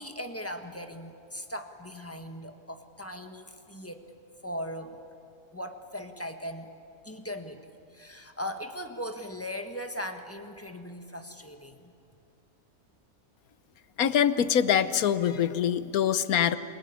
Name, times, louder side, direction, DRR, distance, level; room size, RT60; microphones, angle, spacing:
voice 1, 0.0-4.0 4.4-5.0 5.5-6.7 7.0-7.6 7.9-11.9, equal, 10° left, 6 dB, 1.5 m, -39 dB
voice 2, 14.0-16.6, left 9 dB, 80° left, 13 dB, 1.4 m, -24 dB
27.5 x 19.5 x 9.7 m, 2.6 s
omnidirectional pair, 1.5 m